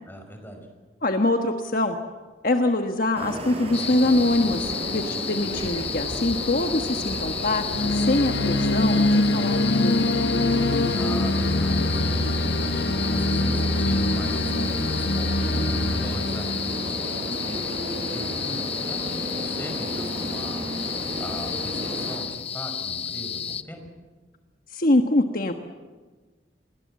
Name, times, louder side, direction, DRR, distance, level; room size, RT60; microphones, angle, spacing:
voice 1, 0.0-0.7 10.9-23.8, equal, 10° left, 4 dB, 5.4 m, -40 dB
voice 2, 1.0-2.0 2.4-10.1 24.7-25.5, left 2 dB, 50° left, 5 dB, 1.4 m, -24 dB
sound 1, 3.2-22.2, right 1 dB, 35° right, 4.8 m, -33 dB
sound 2, 3.7-23.6, left 8 dB, 35° left, 0.8 m, -32 dB
sound 3, 7.7-17.7, left 2 dB, 75° left, 0.9 m, -24 dB
28.5 x 22.0 x 7.6 m, 1.3 s
head